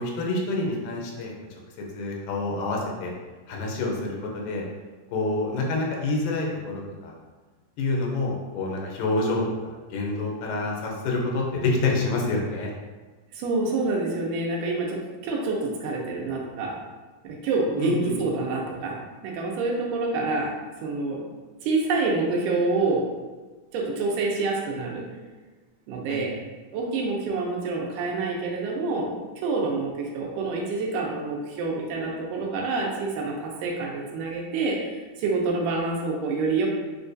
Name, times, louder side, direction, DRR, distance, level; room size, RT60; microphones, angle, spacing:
voice 1, 0.0-1.6 1.9-3.1 3.5-4.6 5.1-7.1 7.8-12.7 17.8-18.2 26.1-26.3, left 2 dB, 90° left, -1 dB, 2.4 m, -27 dB
voice 2, 13.3-16.8 17.2-20.5 20.8-21.3 21.6-23.1 23.7-25.1 25.9-26.4 26.7-29.2 29.4-36.7, right 3 dB, 80° right, -1 dB, 2.1 m, -27 dB
6.2 x 2.3 x 2.6 m, 1.3 s
omnidirectional pair, 3.7 m